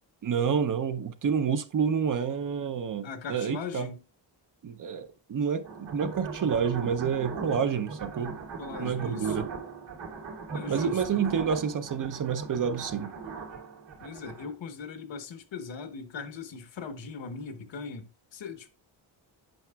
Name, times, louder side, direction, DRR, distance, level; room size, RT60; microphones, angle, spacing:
voice 1, 0.2-3.9 4.6-8.4 8.8-9.5 10.7-13.1, right 7 dB, 45° right, 0.6 m, -29 dB
voice 2, 3.0-4.0 8.6-9.5 10.5-11.0 14.0-18.7, left 5 dB, 75° left, 1.1 m, -40 dB
sound 1, 5.6-14.5, right 5 dB, 75° right, 2.6 m, -38 dB
8.9 x 5.8 x 2.3 m
wide cardioid pair, 145°, 46 cm